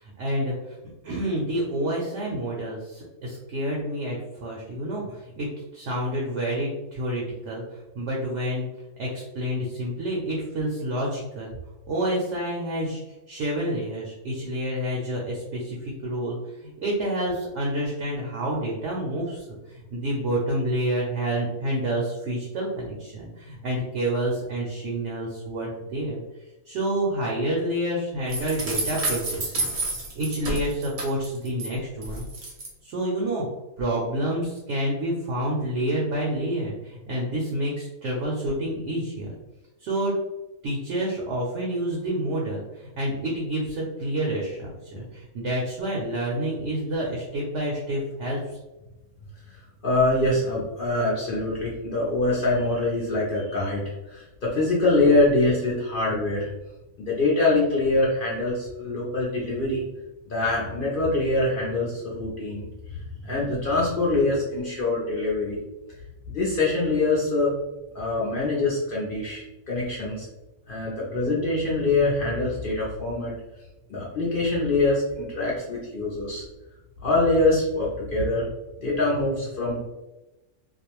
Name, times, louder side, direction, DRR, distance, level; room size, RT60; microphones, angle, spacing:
voice 1, 0.0-0.8 1.0-8.6 9.0-11.5 11.9-13.0 13.3-16.4 16.6-26.2 26.7-29.7 30.1-32.3 32.8-33.5 33.8-39.3 39.8-40.1 40.6-48.4, right 1 dB, 65° right, -2 dB, 0.8 m, -28 dB
sound 1, 28.3-31.7 32.0-32.7, right 2 dB, 45° right, 0.4 m, -30 dB
voice 2, 49.5-56.5 57.1-59.8 60.3-65.6 66.3-67.5 67.9-70.3 70.7-73.3 73.9-76.4 77.0-78.5 78.8-79.9, left 2 dB, 60° left, -5 dB, 0.5 m, -24 dB
2.4 x 2.1 x 2.9 m, 1.0 s
omnidirectional pair, 1.5 m